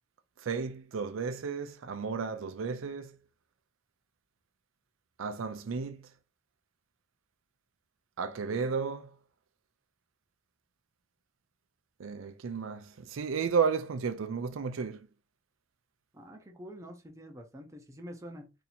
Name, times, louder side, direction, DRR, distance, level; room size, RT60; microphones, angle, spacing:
voice 1, 0.4-3.1 5.2-6.1 8.2-9.1 12.0-15.1, right 5 dB, 85° right, 0.4 m, -33 dB
voice 2, 16.1-18.5, equal, 15° right, 0.6 m, -46 dB
2.8 x 2.7 x 4.1 m
head